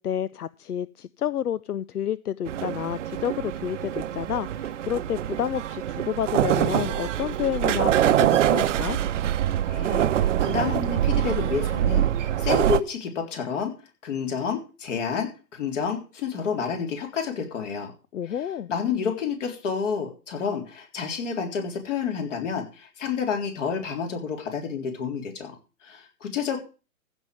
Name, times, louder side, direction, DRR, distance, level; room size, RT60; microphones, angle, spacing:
voice 1, 0.0-9.0 18.1-18.7, left 9 dB, 85° left, 19 dB, 0.6 m, -30 dB
sound 1, 2.5-12.8, right 11 dB, 55° right, 0.8 m, -24 dB
voice 2, 9.6-13.7 14.0-17.9 18.3-18.4 18.7-25.6 25.8-26.6, left 6 dB, 55° left, 4 dB, 3.8 m, -29 dB
15.5 x 5.4 x 7.6 m, 0.34 s
figure-of-eight pair, 125°, 44 cm